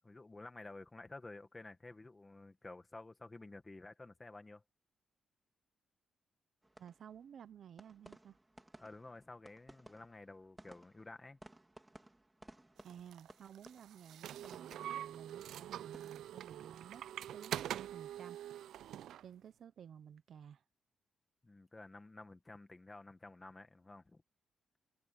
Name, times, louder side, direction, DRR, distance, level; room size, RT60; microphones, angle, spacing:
voice 1, 0.0-4.6 8.8-11.4 21.4-24.2, left 2 dB, 15° left, 1.8 m, -52 dB
sound 1, 6.6-17.7 18.0-18.5, right 1 dB, 10° right, 3.1 m, -61 dB
voice 2, 6.8-8.4 12.8-18.4 19.2-20.6, right 8 dB, 50° right, 0.7 m, -54 dB
sound 2, 12.9-19.2, right 11 dB, 85° right, 0.5 m, -45 dB
wide cardioid pair, 175°, 0 cm